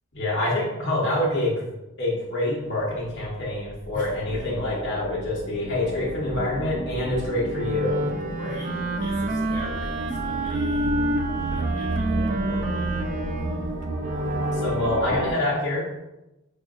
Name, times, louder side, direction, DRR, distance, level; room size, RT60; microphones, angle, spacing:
voice 1, 0.1-1.7 2.0-8.1 14.3-15.9, left 1 dB, 55° left, -6 dB, 1.0 m, -26 dB
sound 1, 2.7-15.3, right 2 dB, 85° right, 0.7 m, -32 dB
voice 2, 3.9-4.5 8.3-11.1 11.4-12.9 13.4-13.6, right 1 dB, 35° left, -4 dB, 0.7 m, -41 dB
Wind instrument woodwind instrument, 7.5-14.9, right 1 dB, 35° right, 0.3 m, -28 dB
5.1 x 2.5 x 2.4 m, 0.97 s
head